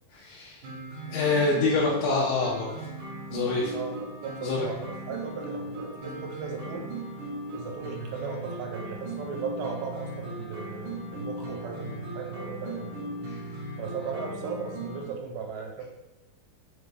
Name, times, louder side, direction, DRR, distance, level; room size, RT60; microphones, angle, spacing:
voice 1, 0.1-0.6 1.1-2.7 3.3-3.7 4.4-4.7 13.3-13.4, left 3 dB, 80° left, -5 dB, 2.1 m, -26 dB
sound 1, 0.6-15.0, right 2 dB, 70° right, 2.0 m, -38 dB
voice 2, 3.7-6.9 7.5-12.9 13.8-15.8, right 5 dB, 85° right, 1 dB, 2.5 m, -37 dB
5.9 x 2.1 x 3.2 m, 1.0 s
omnidirectional pair, 4.4 m